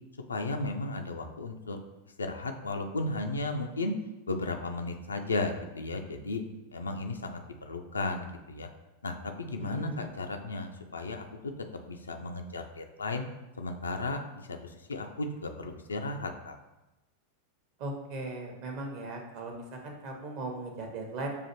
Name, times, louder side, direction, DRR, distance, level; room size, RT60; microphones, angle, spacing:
voice 1, 0.3-1.8 2.2-3.9 4.3-6.4 6.7-7.4 7.7-8.7 9.0-11.2 11.9-13.2 13.6-14.2 14.5-14.6 14.9-16.6, left 2 dB, 75° left, 5 dB, 0.4 m, -34 dB
voice 2, 9.6-10.1 17.8-21.3, right 2 dB, 45° right, 2 dB, 0.8 m, -38 dB
6.7 x 2.5 x 2.9 m, 0.99 s
figure-of-eight pair, 90°, 0 cm